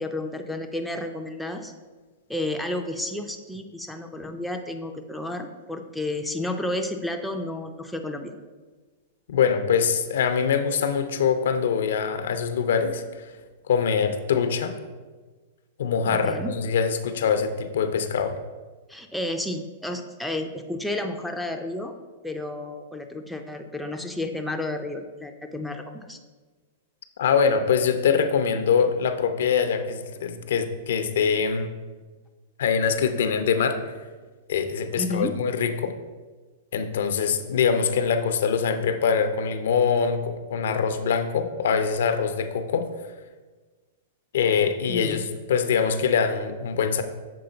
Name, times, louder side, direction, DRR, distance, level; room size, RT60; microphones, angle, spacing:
voice 1, 0.0-1.7 2.3-8.3 16.1-16.5 18.9-21.9 22.2-26.2 35.0-35.3 44.9-45.3, left 1 dB, ahead, 3 dB, 0.3 m, -31 dB
voice 2, 9.3-13.3 13.7-14.7 15.8-18.3 27.2-31.7 32.6-33.8 34.5-35.9 36.7-42.9 44.3-47.0, left 6 dB, 80° left, 9 dB, 0.5 m, -23 dB
6.8 x 3.7 x 3.8 m, 1.3 s
hypercardioid pair, 150°, 0 cm